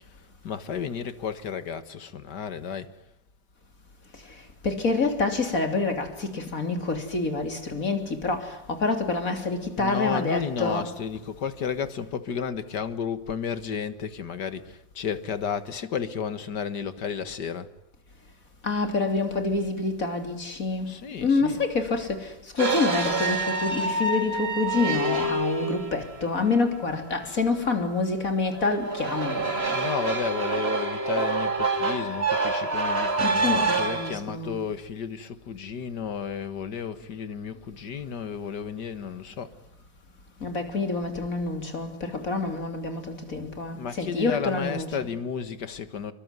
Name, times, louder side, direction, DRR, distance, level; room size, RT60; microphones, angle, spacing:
voice 1, 0.4-2.9 9.8-17.7 20.9-21.7 29.7-39.5 43.8-46.1, left 7 dB, 65° left, 2.1 m, -32 dB
voice 2, 4.6-10.9 18.6-20.9 21.2-22.2 22.6-29.5 33.2-34.6 40.4-44.9, left 3 dB, 45° left, 3.6 m, -27 dB
sound 1, 22.6-26.7 28.5-34.2, right 3 dB, 35° right, 2.7 m, -27 dB
27.0 x 23.0 x 9.4 m
omnidirectional pair, 2.0 m